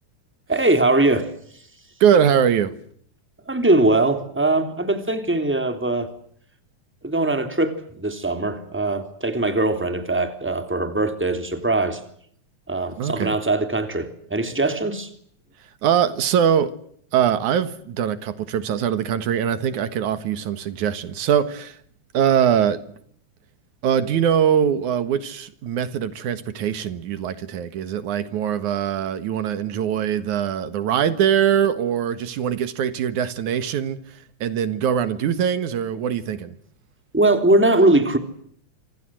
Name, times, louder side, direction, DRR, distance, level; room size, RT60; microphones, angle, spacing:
voice 1, 0.5-1.3 3.5-6.1 7.0-12.0 12.7-15.1 37.1-38.2, right 2 dB, 5° right, 3.1 m, -21 dB
voice 2, 2.0-2.7 13.0-13.4 15.8-16.7 17.1-21.8 22.1-22.8 23.8-36.6, right 8 dB, 85° right, 3.0 m, -22 dB
27.5 x 26.0 x 7.7 m
omnidirectional pair, 3.3 m